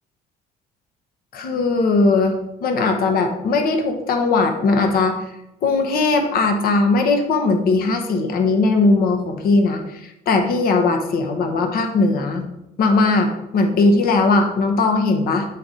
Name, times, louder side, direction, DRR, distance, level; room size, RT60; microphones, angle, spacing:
voice 1, 1.3-5.1 5.6-12.4 12.8-15.5, left 3 dB, 60° left, 5 dB, 1.0 m, -19 dB
7.8 x 4.2 x 5.1 m, 0.88 s
cardioid pair, 110°, 17 cm